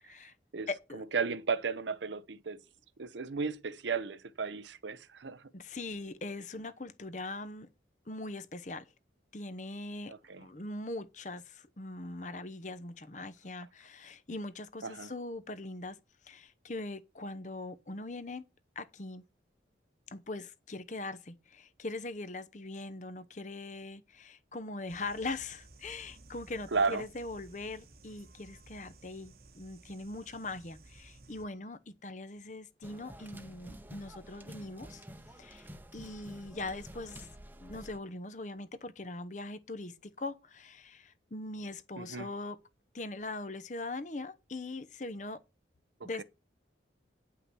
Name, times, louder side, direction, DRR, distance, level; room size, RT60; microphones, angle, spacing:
voice 1, 0.0-0.3 0.7-1.0 5.5-7.7 8.1-8.9 9.3-16.0 16.2-18.5 18.8-19.2 20.1-35.0 35.4-35.7 35.9-37.3 37.6-42.6 42.9-45.4 46.0-46.2, left 2 dB, 40° left, 0.8 m, -41 dB
voice 2, 0.5-2.6 3.0-5.4 10.3-10.4 14.8-15.1 26.7-27.0 42.0-42.3 46.0-46.2, right 5 dB, 80° right, 0.7 m, -34 dB
sound 1, 24.9-31.5, right 2 dB, 55° right, 1.1 m, -56 dB
sound 2, 32.8-38.0, equal, 10° right, 0.8 m, -50 dB
9.6 x 5.7 x 6.0 m
head